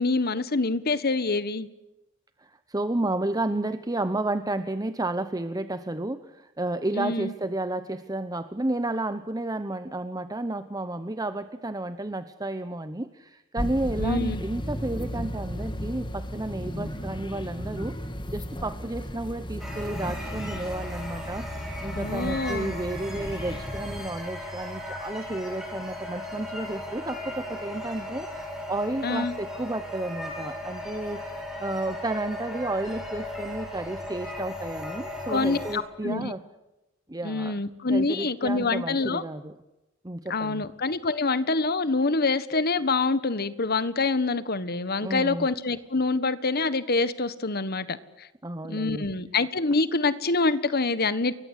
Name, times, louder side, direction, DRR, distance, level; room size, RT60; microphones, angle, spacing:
voice 1, 0.0-1.7 6.9-7.3 14.0-14.4 21.9-22.7 29.0-29.3 35.3-36.3 37.2-39.2 40.3-48.3 48.7-51.3, left 3 dB, 50° left, 14 dB, 1.4 m, -26 dB
voice 2, 2.4-18.0 18.3-36.4 37.1-37.6 37.9-39.5 40.0-40.6 45.0-45.5 48.4-49.1, right 2 dB, 20° right, 11 dB, 0.9 m, -32 dB
sound 1, 13.6-24.1, equal, 25° left, 2.2 m, -35 dB
sound 2, 19.6-35.8, left 1 dB, ahead, 8.0 m, -37 dB
29.5 x 22.5 x 8.3 m, 0.99 s
head